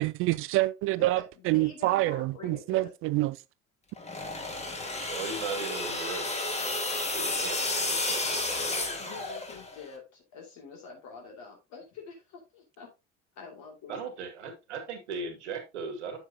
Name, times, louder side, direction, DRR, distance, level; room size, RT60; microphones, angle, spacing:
voice 1, 0.0-3.4 5.0-5.1, right 18 dB, 40° right, 0.4 m, -27 dB
voice 2, 1.5-2.9 9.0-12.9 13.4-14.0, left 5 dB, 50° left, 2.4 m, -46 dB
sound 1, 4.0-9.8, left 2 dB, 20° left, 2.1 m, -32 dB
voice 3, 5.1-6.3 7.1-9.3 13.9-16.2, right 5 dB, 70° right, 1.9 m, -38 dB
8.7 x 7.3 x 2.7 m
figure-of-eight pair, 60°, 36 cm